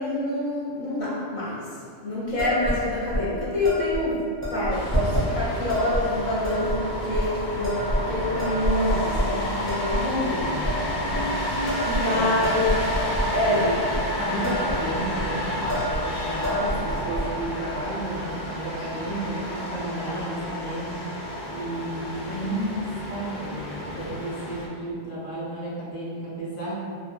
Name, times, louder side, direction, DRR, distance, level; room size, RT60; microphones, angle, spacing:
voice 1, 0.0-1.7 2.0-4.2 4.5-11.5 11.8-12.8 13.3-13.7, left 1 dB, 50° left, -7 dB, 0.7 m, -27 dB
sound 1, 2.4-2.8 3.1-3.2 3.6-4.0 4.4-5.3 5.7-6.0 6.4-6.8 7.1-7.2 7.6-8.1 8.4-9.3 9.7-10.0 10.4-10.7 11.1-11.3 11.7-13.3 13.7-14.0 14.3-14.8 15.0-15.2 15.7-16.0 16.3-17.2, equal, 15° right, 0.6 m, -27 dB
sound 2, 4.7-24.7, equal, 90° left, 0.9 m, -30 dB
voice 2, 12.0-12.5 13.4-13.7 14.2-21.0 21.5-26.7, right 1 dB, 25° left, -8 dB, 0.3 m, -32 dB
2.2 x 2.1 x 3.0 m, 2.3 s
omnidirectional pair, 1.1 m